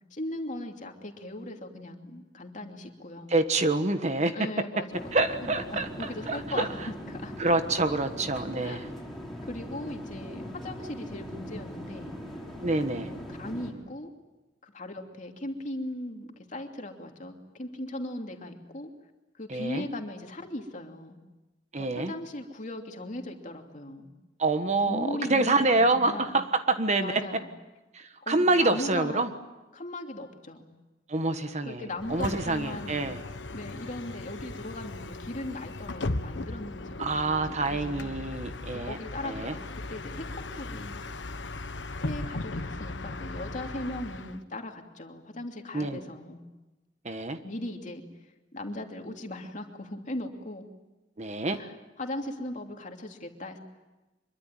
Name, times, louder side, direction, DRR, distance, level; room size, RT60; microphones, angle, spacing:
voice 1, 0.1-3.3 4.3-5.1 5.4-7.4 8.6-8.9 9.4-12.1 12.9-14.1 14.6-18.9 19.4-21.2 21.8-24.1 24.8-26.3 27.0-27.5 28.2-29.2 29.7-30.6 31.6-33.1 33.5-38.2 38.8-39.6 39.9-41.0 42.0-46.4 47.4-48.0 48.5-50.6 51.5-53.6, left 1 dB, 45° left, 3 dB, 2.8 m, -38 dB
voice 2, 3.3-4.4 5.1-6.7 7.4-8.9 12.6-13.1 19.5-19.8 21.7-22.1 24.4-27.2 27.9-29.3 31.1-33.2 37.0-39.0 39.2-39.5 45.7-46.0 47.0-47.4 51.2-51.6, right 2 dB, 40° right, 8 dB, 1.4 m, -27 dB
sound 1, 4.9-13.7, equal, ahead, 5.3 m, -40 dB
Bus, 32.0-44.4, left 2 dB, 85° left, 1.3 m, -37 dB
25.0 x 23.0 x 9.1 m, 1.1 s
head